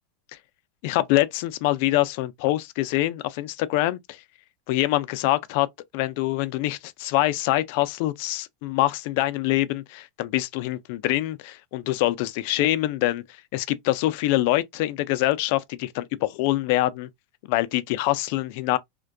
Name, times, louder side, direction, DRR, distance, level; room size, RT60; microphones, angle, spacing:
voice 1, 0.8-4.2 4.7-5.7 5.9-13.2 13.5-17.1 17.5-18.8, left 16 dB, 60° left, 0.3 m, -24 dB
2.5 x 2.2 x 2.3 m
supercardioid pair, 140°, 0 cm